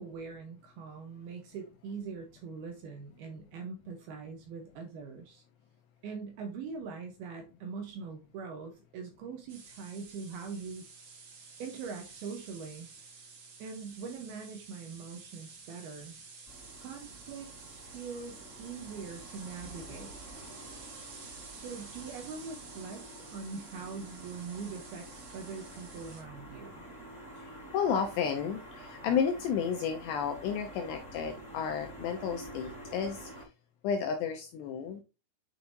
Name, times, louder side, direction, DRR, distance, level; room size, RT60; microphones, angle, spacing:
voice 1, 0.0-5.4 6.0-10.8 11.6-12.9 13.6-16.2 16.8-20.1 21.6-26.8, right 5 dB, 80° right, 4 dB, 2.3 m, -42 dB
sound 1, 9.5-26.2, right 5 dB, 50° right, 2.3 m, -51 dB
sound 2, 16.5-33.4, right 1 dB, 15° left, 3.2 m, -49 dB
voice 2, 27.4-33.5 33.8-35.0, left 7 dB, 80° left, 5 dB, 2.6 m, -32 dB
9.1 x 5.4 x 2.7 m, 0.28 s
omnidirectional pair, 5.6 m